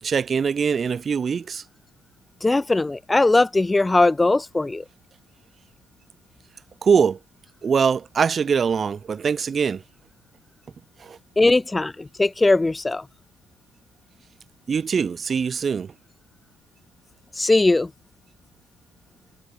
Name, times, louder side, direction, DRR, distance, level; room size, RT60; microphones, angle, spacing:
voice 1, 0.0-1.6 6.8-7.2 7.6-9.8 11.0-11.2 14.7-15.9, right 6 dB, 35° right, 2.2 m, -22 dB
voice 2, 2.4-4.8 11.4-13.1 17.4-17.9, left 2 dB, 15° left, 0.4 m, -19 dB
figure-of-eight pair, 50°, 0 cm